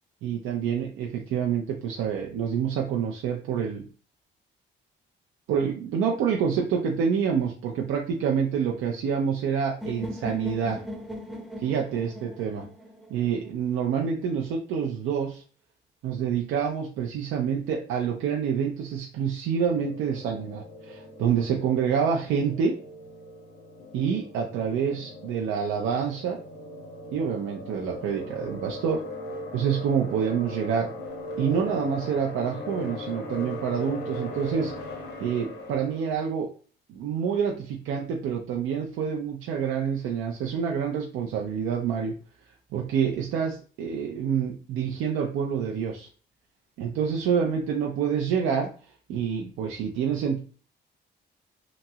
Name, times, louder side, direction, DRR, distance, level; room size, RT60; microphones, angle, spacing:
voice 1, 0.2-3.9 5.5-10.8 11.6-12.7 13.1-15.4 16.0-22.8 23.9-26.4 27.1-29.0 29.5-30.9 31.4-34.7 35.2-36.5 36.9-42.1 42.7-46.1 46.8-48.7 49.1-50.4, right 7 dB, 90° right, 0 dB, 0.5 m, -27 dB
sound 1, 9.8-13.8, equal, ahead, 0.6 m, -39 dB
sound 2, 19.6-36.2, left 1 dB, 55° left, 0.9 m, -39 dB
2.9 x 2.7 x 2.3 m, 0.40 s
cardioid pair, 90°, 20 cm